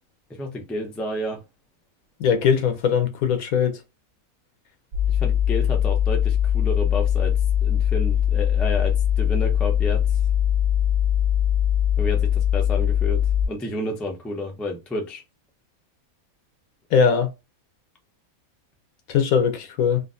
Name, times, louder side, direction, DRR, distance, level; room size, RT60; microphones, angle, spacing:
voice 1, 0.4-1.4 5.1-10.0 12.0-13.2 13.5-15.2, left 1 dB, ahead, 0.3 m, -30 dB
voice 2, 2.2-3.7 16.9-17.3 19.1-20.0, left 7 dB, 80° left, 1.2 m, -20 dB
sound 1, 4.9-13.5, left 10 dB, 65° right, 0.7 m, -21 dB
3.8 x 2.1 x 2.5 m
omnidirectional pair, 1.5 m